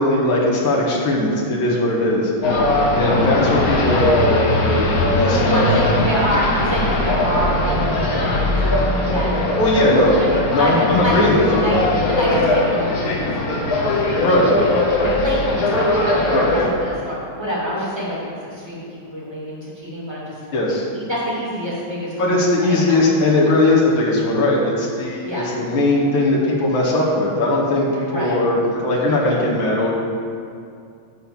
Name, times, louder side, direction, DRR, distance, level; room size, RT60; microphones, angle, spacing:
voice 1, 0.0-2.3 3.0-5.6 9.6-10.2 10.5-11.7 14.2-14.5 16.3-16.5 20.5-20.8 22.2-29.9, left 1 dB, 70° left, -5 dB, 2.4 m, -19 dB
sound 1, 2.4-16.7, left 2 dB, 50° left, 1.4 m, -20 dB
voice 2, 5.4-8.6 9.0-9.7 10.2-10.3 10.6-11.8 12.1-14.5 15.0-20.3 20.9-22.8 25.2-25.5 28.1-28.4, equal, 10° right, -7 dB, 2.5 m, -26 dB
11.0 x 4.5 x 7.0 m, 2.3 s
omnidirectional pair, 2.3 m